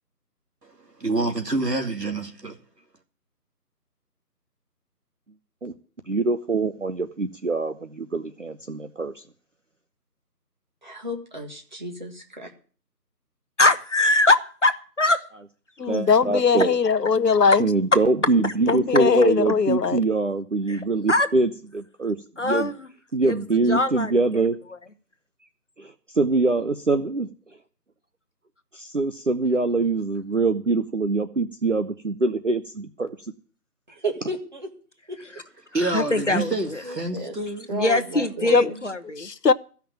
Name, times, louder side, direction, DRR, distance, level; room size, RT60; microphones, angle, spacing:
voice 1, 1.0-2.6 35.7-37.7, right 2 dB, 75° right, 2.7 m, -27 dB
voice 2, 6.1-9.2 15.9-16.8 17.6-22.2 22.4-22.7 23.1-24.6 25.8-27.3 28.7-33.1, right 3 dB, 50° right, 0.7 m, -24 dB
voice 3, 10.8-12.2 16.0-16.3 33.9-34.7 36.8-37.4 37.7-38.8, right 2 dB, 30° right, 1.9 m, -33 dB
voice 4, 13.6-15.2 20.7-21.3 22.4-22.9 23.2-24.5 35.8-36.8 37.7-39.3, left 2 dB, 45° left, 1.0 m, -23 dB
voice 5, 15.8-17.7 18.7-20.0 38.5-38.7 39.2-39.5, left 5 dB, 80° left, 0.8 m, -20 dB
14.5 x 5.8 x 8.7 m
figure-of-eight pair, 165°, 49 cm